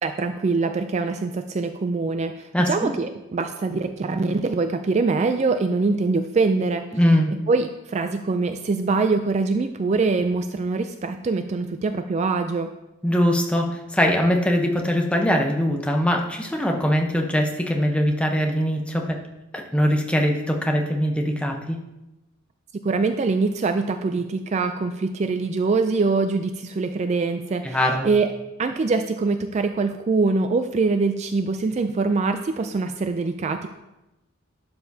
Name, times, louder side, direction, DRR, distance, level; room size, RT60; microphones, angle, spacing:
voice 1, 0.0-6.9 7.5-12.7 22.8-27.8 28.0-28.3 28.6-33.7, right 3 dB, 35° right, 8 dB, 0.3 m, -23 dB
voice 2, 2.5-2.9 6.9-7.3 13.0-19.2 19.5-21.8 27.6-28.1, equal, 5° left, 2 dB, 0.8 m, -22 dB
12.0 x 6.8 x 2.7 m, 0.97 s
head